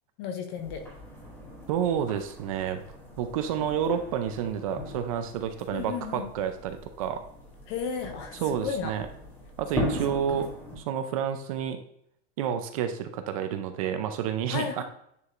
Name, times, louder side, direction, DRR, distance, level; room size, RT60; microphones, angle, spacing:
voice 1, 0.2-0.8 5.7-6.3 7.7-8.4 8.6-8.9 10.3-10.4 14.5-14.8, left 6 dB, 25° left, 6 dB, 0.4 m, -33 dB
sound 1, 0.6-10.8, left 1 dB, 5° left, 0.8 m, -39 dB
voice 2, 1.7-2.8 3.2-7.2 8.3-9.1 9.6-10.5 10.8-11.8 12.4-14.8, right 8 dB, 35° right, 8 dB, 0.4 m, -29 dB
9.6 x 4.6 x 2.5 m, 0.73 s
supercardioid pair, 180°, 31 cm